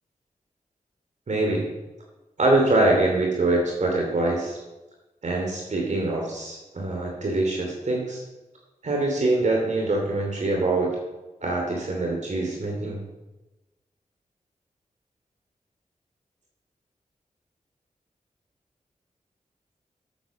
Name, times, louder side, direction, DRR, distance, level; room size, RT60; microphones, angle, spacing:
voice 1, 1.3-1.7 2.4-4.6 5.2-8.2 8.8-11.0 11.4-13.0, right 2 dB, 60° right, -1 dB, 2.7 m, -24 dB
11.5 x 8.4 x 7.4 m, 1.1 s
wide cardioid pair, 80°, 14 cm